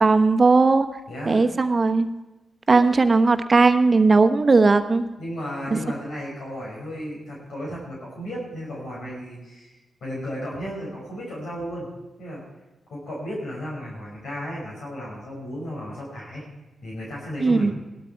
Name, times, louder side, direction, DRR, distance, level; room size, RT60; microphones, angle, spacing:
voice 1, 0.0-0.9 1.3-2.1 2.7-5.0 5.7-5.8 17.4-17.7, right 3 dB, 45° right, 9 dB, 1.1 m, -17 dB
voice 2, 1.1-1.5 5.2-11.9 12.2-12.4 12.9-16.4 16.8-17.7, equal, 75° left, -4 dB, 6.0 m, -34 dB
17.0 x 12.5 x 4.6 m, 1.1 s
supercardioid pair, 45°, 0 cm